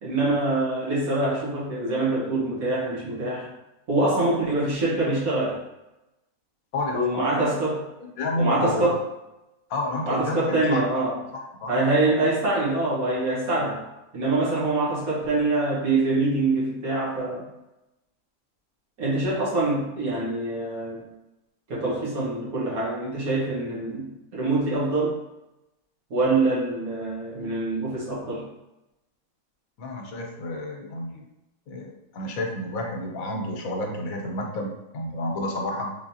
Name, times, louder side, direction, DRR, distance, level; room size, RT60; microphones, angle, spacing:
voice 1, 0.0-3.5 3.9-5.6 6.9-7.9 8.4-9.0 10.1-11.2 11.7-13.8 14.1-17.4 19.0-21.1 21.7-25.2 26.1-28.5, right 2 dB, 80° right, -6 dB, 1.8 m, -25 dB
voice 2, 6.7-7.6 8.2-8.9 9.7-10.8 11.3-11.7 29.8-31.2 31.7-35.9, left 1 dB, 80° left, 2 dB, 1.1 m, -30 dB
3.8 x 3.2 x 2.8 m, 0.95 s
omnidirectional pair, 1.5 m